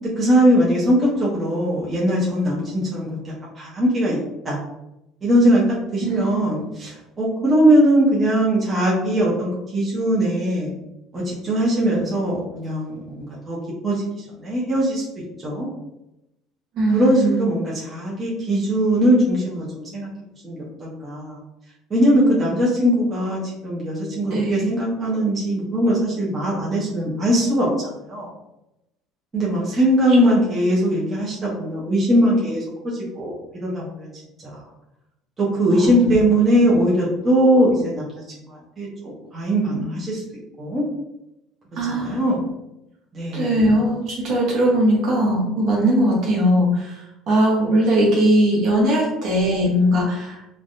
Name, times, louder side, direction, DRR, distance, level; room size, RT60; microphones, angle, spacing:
voice 1, 0.0-4.6 5.2-5.6 5.9-10.7 11.1-13.6 13.8-15.0 15.4-15.7 16.9-20.1 20.4-21.4 21.9-28.3 29.3-34.1 34.4-34.6 35.4-40.2 40.6-40.8 41.9-42.5 43.1-43.6, equal, 25° right, -6 dB, 0.8 m, -20 dB
voice 2, 6.0-6.5 16.7-17.4 24.3-24.7 35.7-36.2 41.7-42.3 43.3-50.4, right 1 dB, 55° right, -3 dB, 1.1 m, -20 dB
3.3 x 2.2 x 2.6 m, 0.89 s
cardioid pair, 135°, 0 cm